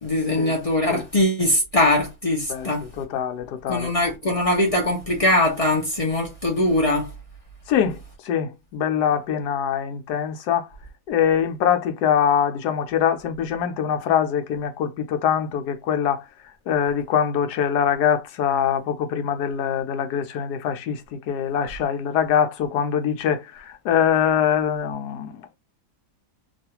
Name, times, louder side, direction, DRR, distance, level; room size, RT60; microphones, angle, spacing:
voice 1, 0.0-2.8 3.7-7.1, left 1 dB, 50° left, 0.4 m, -21 dB
voice 2, 2.5-3.9 7.7-10.7 11.1-16.3 16.7-25.6, left 8 dB, 80° left, 1.2 m, -23 dB
3.1 x 2.4 x 2.8 m
omnidirectional pair, 1.7 m